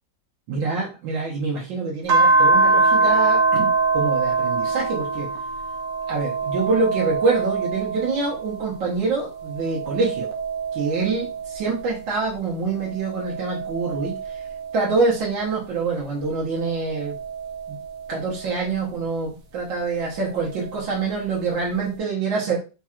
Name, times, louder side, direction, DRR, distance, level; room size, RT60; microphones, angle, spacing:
voice 1, 0.5-5.3 6.1-10.3 10.7-14.4 14.7-17.2 17.7-17.8 18.1-22.6, right 4 dB, 85° right, -4 dB, 1.8 m, -25 dB
sound 1, 2.1-8.8 9.3-12.1 12.7-15.5 16.3-18.7 20.1-21.1, right 3 dB, 55° right, 1.1 m, -24 dB
4.7 x 4.3 x 2.4 m, 0.32 s
omnidirectional pair, 2.0 m